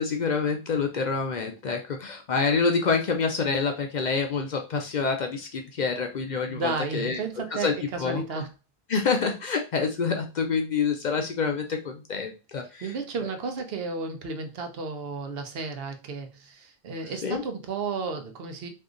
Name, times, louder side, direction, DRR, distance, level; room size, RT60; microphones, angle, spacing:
voice 1, 0.0-7.2 7.5-7.7 8.0-8.4 8.9-12.9 17.2-17.4, left 5 dB, 55° left, 4 dB, 0.6 m, -27 dB
voice 2, 6.5-8.5 12.8-18.7, right 4 dB, 75° right, 6 dB, 0.9 m, -33 dB
2.7 x 2.4 x 3.6 m, 0.30 s
omnidirectional pair, 1.0 m